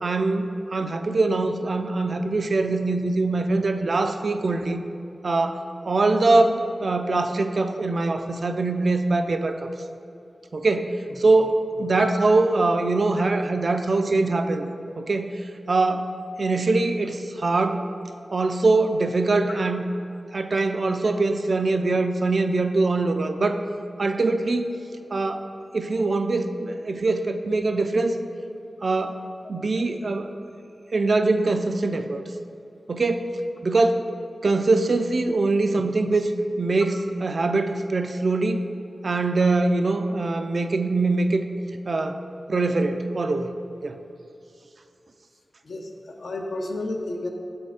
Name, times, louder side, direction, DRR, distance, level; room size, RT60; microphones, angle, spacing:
voice 1, 0.0-4.8 5.2-9.7 10.5-14.7 15.0-15.4 15.7-16.1 16.4-17.8 18.3-19.8 20.3-23.6 24.0-24.8 25.1-28.2 28.8-30.3 30.9-32.3 32.9-33.3 33.6-34.0 34.4-36.3 36.6-37.0 37.2-38.6 39.0-41.5 41.9-42.2 42.5-43.5 43.8-44.0, right 3 dB, 60° right, 7 dB, 0.4 m, -23 dB
voice 2, 11.8-12.1 35.7-35.8 45.6-47.3, left 2 dB, 80° left, 2 dB, 0.7 m, -32 dB
6.8 x 4.4 x 4.8 m, 2.6 s
wide cardioid pair, 100°, 0 cm